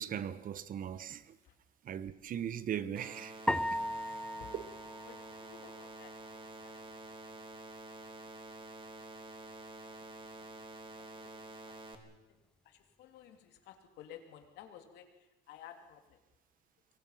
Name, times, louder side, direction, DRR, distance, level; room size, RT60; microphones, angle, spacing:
voice 1, 0.0-1.4 1.8-3.8 4.5-4.7, right 9 dB, 55° right, 1.2 m, -39 dB
sound 1, 2.9-11.9, right 2 dB, 30° right, 3.2 m, -49 dB
sound 2, 3.5-5.9, left 1 dB, 5° left, 0.8 m, -37 dB
voice 2, 3.9-4.6 5.1-7.0 9.9-10.5 11.0-16.2, left 9 dB, 85° left, 2.9 m, -56 dB
25.5 x 23.0 x 5.8 m
cardioid pair, 110°, 17 cm